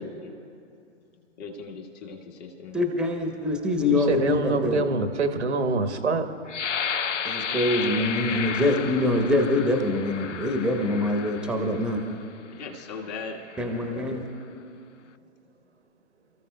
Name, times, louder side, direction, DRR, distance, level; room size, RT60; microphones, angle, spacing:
voice 1, 1.4-2.8 12.5-14.2, left 4 dB, 35° left, 2 dB, 1.5 m, -39 dB
voice 2, 2.7-4.8 7.2-12.0 13.6-14.3, left 1 dB, ahead, 3 dB, 1.0 m, -24 dB
voice 3, 3.9-6.3, right 3 dB, 70° right, 8 dB, 1.1 m, -25 dB
sound 1, 6.5-12.1 12.8-13.0 13.4-13.9, left 7 dB, 90° left, 0.5 m, -32 dB
29.0 x 14.5 x 2.2 m, 2.6 s
figure-of-eight pair, 120°, 35 cm